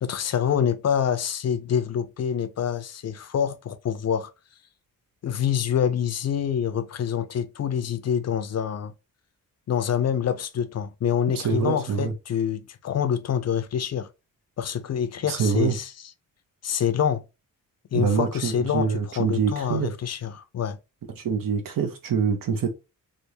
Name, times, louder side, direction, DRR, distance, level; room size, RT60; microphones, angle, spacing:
voice 1, 0.0-4.3 5.2-8.9 9.7-14.1 14.6-15.9 16.6-17.2 17.9-18.9 19.2-20.8, left 8 dB, 50° left, 0.4 m, -26 dB
voice 2, 11.3-12.1 15.3-15.8 17.9-19.9 21.2-22.7, right 6 dB, 75° right, 0.9 m, -25 dB
3.3 x 2.5 x 2.8 m
wide cardioid pair, 145°, 34 cm